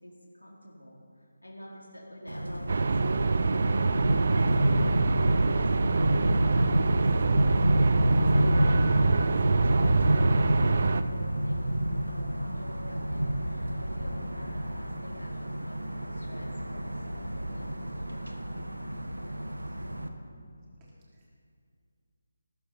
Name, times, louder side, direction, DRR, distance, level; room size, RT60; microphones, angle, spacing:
voice 1, 0.0-9.3 9.6-11.6 12.0-18.8, equal, 85° left, -4 dB, 4.1 m, -47 dB
sound 1, 2.3-20.1, right 1 dB, 85° right, 1.5 m, -28 dB
sound 2, 2.7-11.0, right 4 dB, 50° right, 0.7 m, -26 dB
voice 2, 20.8-21.3, right 1 dB, 20° right, -6 dB, 3.7 m, -65 dB
19.0 x 14.0 x 4.4 m, 2.2 s
figure-of-eight pair, 155°, 0 cm